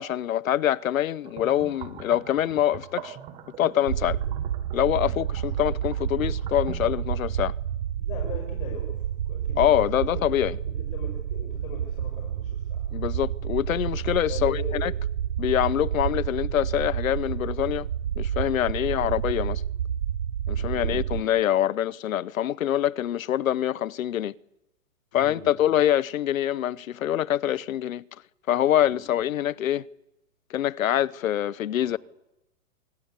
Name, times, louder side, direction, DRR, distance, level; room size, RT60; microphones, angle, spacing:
voice 1, 0.0-3.2 3.6-4.2 4.7-7.5 9.6-10.6 12.9-14.9 15.4-17.9 18.2-19.6 20.5-24.3 25.1-28.0 28.5-29.8 30.5-32.0, left 11 dB, 85° left, 0.9 m, -25 dB
sound 1, 1.2-7.0, right 9 dB, 15° right, 1.4 m, -42 dB
sound 2, 3.9-21.2, right 9 dB, 75° right, 1.2 m, -30 dB
voice 2, 8.0-9.0 9.3-10.2 10.9-12.9 14.3-14.9 18.8-19.1 20.5-21.3 25.1-25.5 28.8-29.0 31.8-31.9, left 6 dB, 40° left, 5.8 m, -41 dB
25.5 x 25.0 x 8.3 m
hypercardioid pair, 175°, 40 cm